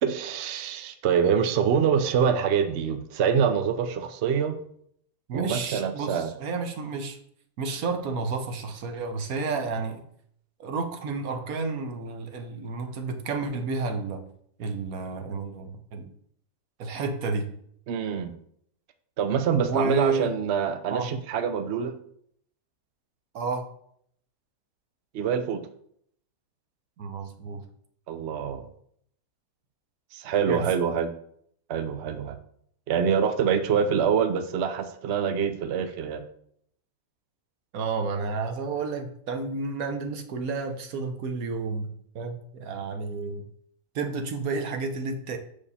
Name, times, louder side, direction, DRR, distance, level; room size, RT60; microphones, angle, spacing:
voice 1, 0.0-4.6 5.3-6.3 17.9-18.3 19.2-21.9 25.1-25.6 28.1-28.7 30.1-31.1 31.7-32.3 32.9-36.2, right 7 dB, 75° right, 8 dB, 0.6 m, -25 dB
voice 2, 5.3-7.2 7.6-10.0 10.6-14.2 14.6-16.1 16.8-17.5 19.6-20.3 20.9-21.1 23.3-23.6 27.0-27.6 30.5-30.7 37.7-43.4 43.9-45.4, right 4 dB, 60° right, 6 dB, 1.2 m, -31 dB
6.9 x 5.0 x 4.1 m, 0.66 s
omnidirectional pair, 1.9 m